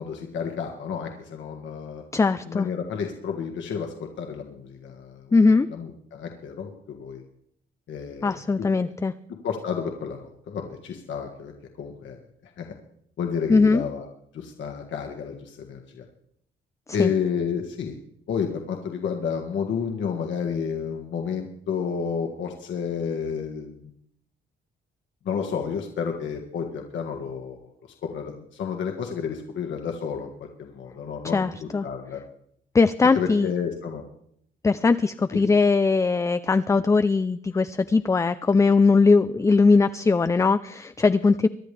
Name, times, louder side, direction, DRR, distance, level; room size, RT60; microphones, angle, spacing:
voice 1, 0.0-2.0 2.5-7.2 7.9-8.7 9.3-11.5 11.8-12.2 12.4-12.7 13.2-14.1 14.3-16.0 16.9-18.0 18.3-23.9 25.2-27.7 28.0-31.5 31.8-32.2 33.1-34.0 35.3-35.4, left 6 dB, 70° left, 2 dB, 1.6 m, -31 dB
voice 2, 2.1-2.7 5.3-5.7 8.2-9.1 13.5-13.8 17.0-17.1 31.2-31.9 32.7-33.5 34.6-41.5, left 4 dB, 15° left, 11 dB, 0.4 m, -20 dB
24.0 x 10.5 x 3.4 m, 0.71 s
cardioid pair, 90°, 20 cm